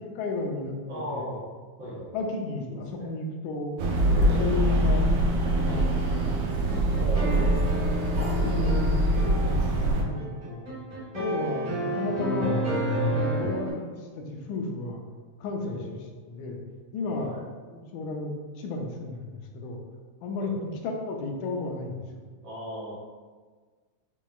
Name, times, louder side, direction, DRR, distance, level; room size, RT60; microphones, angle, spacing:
voice 1, 0.0-0.8 1.1-1.3 1.8-3.7 4.1-5.0 5.6-6.0 6.4-7.5 8.4-9.0 9.4-10.7 11.1-12.5 12.9-15.0 15.4-16.0 16.3-16.6 16.9-17.3 17.7-19.8 20.2-20.5 20.8-22.2, left 2 dB, 85° left, 1 dB, 2.0 m, -33 dB
voice 2, 0.9-1.4 1.8-2.2 2.7-3.1 4.0-4.4 7.0-7.3 8.1-9.2 13.3-13.5 15.6-15.9 17.1-17.4 20.4-20.7 22.4-22.9, equal, 65° right, -9 dB, 1.2 m, -38 dB
sound 1, 3.8-10.0, right 1 dB, 90° right, 2.1 m, -24 dB
sound 2, 5.5-13.7, right 1 dB, 40° right, 1.5 m, -31 dB
6.2 x 3.5 x 2.3 m, 1.5 s
omnidirectional pair, 3.3 m